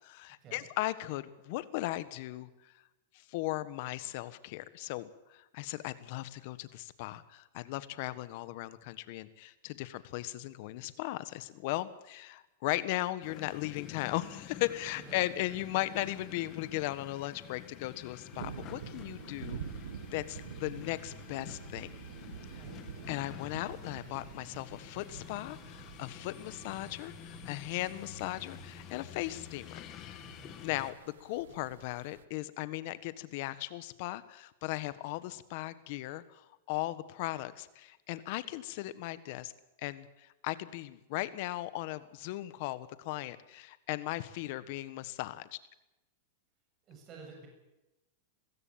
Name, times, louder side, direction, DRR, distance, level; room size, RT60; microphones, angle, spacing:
voice 1, 0.0-2.7 3.1-19.6 20.1-21.9 23.1-30.2 30.6-39.5 39.8-45.6, left 17 dB, 55° left, 15 dB, 1.5 m, -37 dB
sound 1, 13.2-30.9, left 11 dB, 35° left, 2.0 m, -49 dB
sound 2, 18.3-32.2, right 9 dB, 85° right, 1.0 m, -48 dB
voice 2, 22.5-22.8 30.2-30.6 46.8-47.5, right 4 dB, 35° right, 1 dB, 7.4 m, -51 dB
21.5 x 15.5 x 8.9 m, 0.97 s
hypercardioid pair, 130°, 0 cm